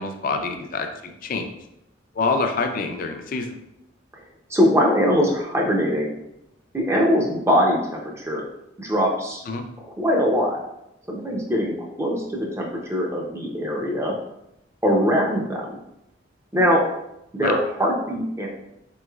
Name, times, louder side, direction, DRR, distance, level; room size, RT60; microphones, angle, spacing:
voice 1, 0.0-1.5 2.1-3.5 9.4-9.6 17.4-17.5, left 3 dB, 45° left, 5 dB, 0.4 m, -26 dB
voice 2, 4.5-6.1 6.7-8.5 8.8-9.4 9.8-10.6 11.1-14.2 14.8-15.8 16.5-16.9 17.3-18.5, equal, 15° right, -2 dB, 0.5 m, -22 dB
4.1 x 3.1 x 2.3 m, 0.84 s
head